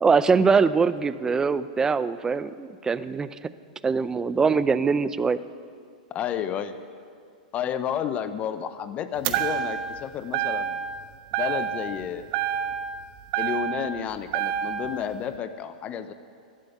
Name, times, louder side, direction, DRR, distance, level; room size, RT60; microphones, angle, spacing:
voice 1, 0.0-3.4 3.8-5.4, right 5 dB, 15° right, 15 dB, 0.5 m, -22 dB
voice 2, 6.1-6.8 7.5-10.9 11.4-12.3 13.4-16.1, left 8 dB, 30° left, 11 dB, 0.7 m, -31 dB
sound 1, 9.2-10.0 10.3-11.0 11.3-12.0 12.3-14.0 14.3-15.0, right 9 dB, 50° right, 1.1 m, -28 dB
12.0 x 9.6 x 10.0 m, 2.2 s
hypercardioid pair, 125°, 4 cm